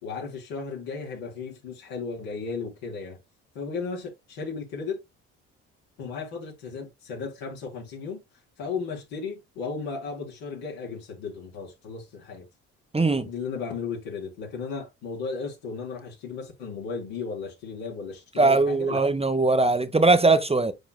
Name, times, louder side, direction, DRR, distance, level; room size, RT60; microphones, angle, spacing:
voice 1, 0.0-3.2 3.6-5.0 6.0-8.2 8.6-12.5 13.2-19.0, left 5 dB, 75° left, 3.6 m, -35 dB
voice 2, 12.9-13.3 18.4-20.7, right 3 dB, 15° right, 1.1 m, -20 dB
10.5 x 4.5 x 2.2 m
hypercardioid pair, 50°, 36 cm